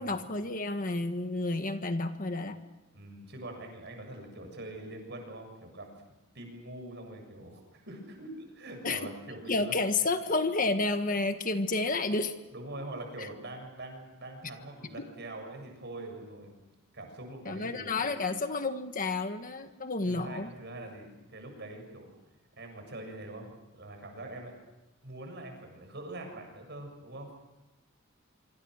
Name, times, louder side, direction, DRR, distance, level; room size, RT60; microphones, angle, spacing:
voice 1, 0.0-2.6 8.8-9.1 9.5-12.4 13.2-13.3 15.0-15.1 17.4-20.5, left 3 dB, 40° left, 8 dB, 1.5 m, -30 dB
voice 2, 2.9-5.9 6.3-9.7 12.5-16.5 16.9-17.9 20.1-22.1 22.6-24.6 25.0-27.4, right 1 dB, 55° right, 3 dB, 7.5 m, -43 dB
26.5 x 25.0 x 6.6 m, 1.1 s
head